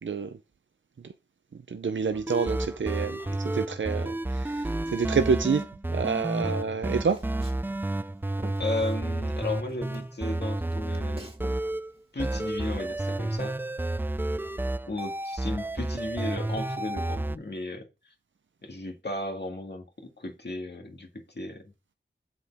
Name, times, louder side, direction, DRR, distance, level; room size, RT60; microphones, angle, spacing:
voice 1, 0.0-0.4 1.7-7.2, right 5 dB, 85° right, 0.5 m, -28 dB
sound 1, 2.1-11.9 12.2-17.4, right 1 dB, 10° right, 0.3 m, -31 dB
Walk footsteps, 7.0-9.4 9.7-11.6 11.9-13.4, right 1 dB, 30° right, 1.9 m, -47 dB
voice 2, 8.6-11.3 12.1-13.6 14.9-18.1 18.6-21.7, left 2 dB, 65° left, 1.8 m, -35 dB
8.0 x 4.9 x 3.4 m
wide cardioid pair, 45°, 19 cm